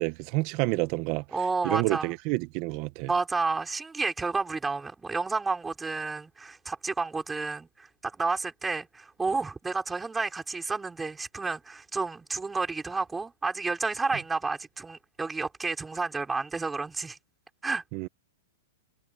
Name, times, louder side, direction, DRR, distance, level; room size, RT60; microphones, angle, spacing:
voice 1, 0.0-1.2 1.6-3.1 17.9-18.1, right 23 dB, 40° right, 1.3 m, -28 dB
voice 2, 1.3-2.1 3.1-17.2 17.6-17.8, right 4 dB, 10° right, 5.8 m, -31 dB
hypercardioid pair, 145°, 0 cm